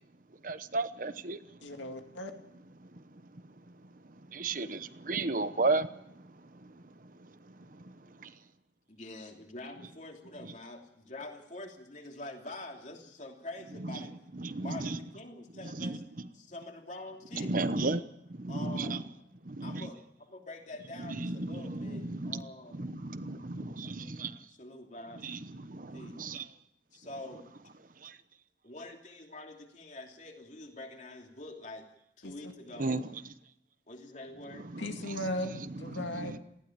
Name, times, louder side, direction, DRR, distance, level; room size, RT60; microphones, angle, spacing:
voice 1, 0.4-1.6 2.8-8.3 10.4-10.5 13.8-15.0 15.6-16.3 17.3-19.0 19.4-19.9 21.0-22.5 22.7-24.4 25.2-26.5 28.0-28.2 32.8-33.2 34.5-35.2 35.7-36.4, right 3 dB, 45° right, 12 dB, 0.9 m, -36 dB
voice 2, 1.6-2.3 32.2-32.3 34.8-36.3, left 1 dB, 85° left, 5 dB, 2.3 m, -37 dB
voice 3, 8.9-14.1 14.6-16.0 16.3-17.5 18.5-19.0 19.6-20.0 20.3-22.8 24.6-25.2 25.9-26.2 26.9-27.4 28.6-31.9 32.2-32.9 33.9-34.7, left 2 dB, 40° left, 2 dB, 2.9 m, -45 dB
19.0 x 15.5 x 8.9 m, 0.78 s
head